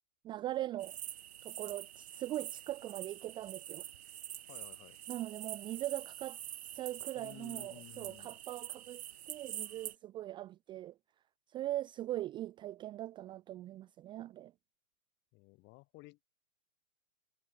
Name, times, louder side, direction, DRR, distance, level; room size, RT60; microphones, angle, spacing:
voice 1, 0.2-1.0 1.4-3.8 5.1-6.4 6.7-10.9 11.5-14.5, right 14 dB, 10° right, 0.7 m, -41 dB
sound 1, 0.8-9.9, right 12 dB, 50° right, 1.7 m, -46 dB
voice 2, 4.5-5.0 7.1-8.4 15.3-16.2, left 23 dB, 25° left, 3.2 m, -55 dB
figure-of-eight pair, 125°, 42 cm